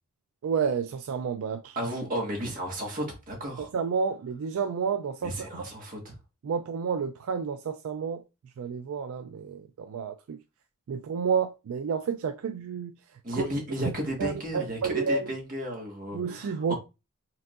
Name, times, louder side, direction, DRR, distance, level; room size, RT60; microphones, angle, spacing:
voice 1, 0.4-1.8 3.6-5.5 6.4-8.2 8.6-10.4 10.9-12.9 13.3-13.5 14.2-15.3 16.1-16.7, right 6 dB, 70° right, 0.3 m, -30 dB
voice 2, 1.7-3.7 5.2-6.2 13.2-16.8, equal, 40° right, 1.4 m, -33 dB
4.6 x 3.6 x 2.4 m
head